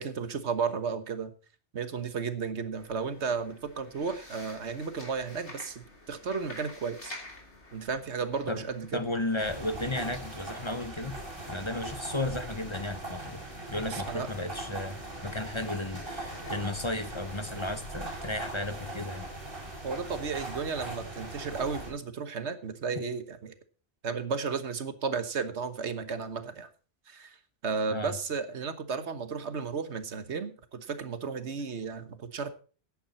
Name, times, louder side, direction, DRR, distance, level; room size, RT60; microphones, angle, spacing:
voice 1, 0.0-1.3 1.7-7.1 7.7-8.9 13.8-14.3 19.8-23.5 24.0-26.7 27.1-27.4 27.6-32.5, right 5 dB, 80° right, 11 dB, 1.5 m, -33 dB
sound 1, 2.7-17.6, left 2 dB, 90° left, 3.5 m, -51 dB
voice 2, 8.9-11.2 11.5-13.4 13.7-19.3 27.9-28.2, left 2 dB, 30° left, 10 dB, 0.9 m, -34 dB
sound 2, 9.4-21.9, right 2 dB, 55° right, 6.2 m, -40 dB
14.5 x 10.0 x 4.2 m, 0.38 s
omnidirectional pair, 1.1 m